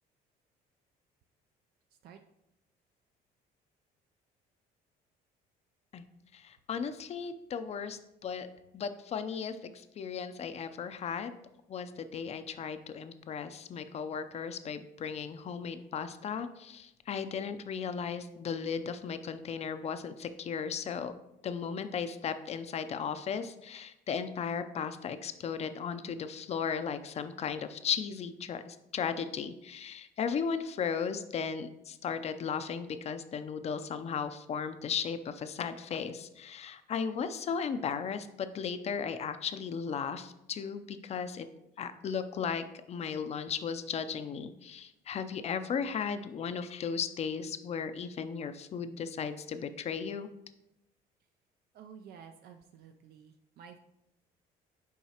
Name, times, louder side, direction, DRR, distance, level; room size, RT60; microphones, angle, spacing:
voice 1, 6.3-8.5 8.7-11.3 11.7-21.1 21.4-41.5 41.8-50.3, left 6 dB, 40° left, 11 dB, 0.5 m, -36 dB
voice 2, 51.7-53.8, right 7 dB, 70° right, 5 dB, 0.4 m, -52 dB
7.1 x 4.6 x 2.9 m, 0.86 s
cardioid pair, 110°, 17 cm